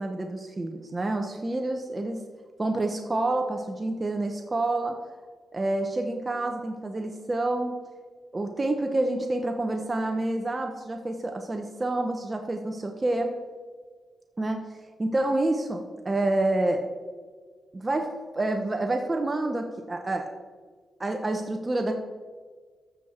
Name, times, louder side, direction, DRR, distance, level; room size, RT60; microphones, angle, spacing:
voice 1, 0.0-2.2 2.6-5.0 5.5-7.8 8.3-13.3 14.4-14.6 15.0-16.8 17.7-18.1 18.3-20.3 21.0-21.9, right 2 dB, 25° right, 4 dB, 0.8 m, -28 dB
13.5 x 6.4 x 4.3 m, 1.5 s
cardioid pair, 90°, 0 cm